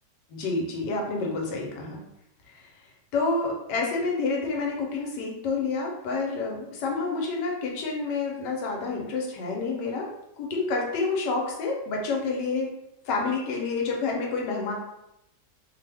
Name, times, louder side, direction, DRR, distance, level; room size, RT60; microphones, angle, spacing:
voice 1, 0.3-2.0 2.5-2.6 3.1-10.1 10.4-12.7 13.0-14.7, left 3 dB, 75° left, -1 dB, 1.2 m, -28 dB
3.1 x 2.1 x 3.3 m, 0.84 s
omnidirectional pair, 1.9 m